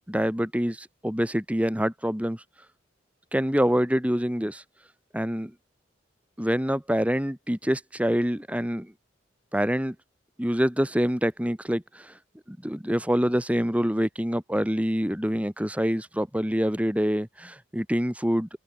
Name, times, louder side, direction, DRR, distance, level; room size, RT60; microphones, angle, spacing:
voice 1, 0.0-2.4 3.3-4.6 5.1-5.5 6.4-8.9 9.5-10.0 10.4-12.1 12.5-18.5, equal, 5° right, 2.2 m, -26 dB
open air
head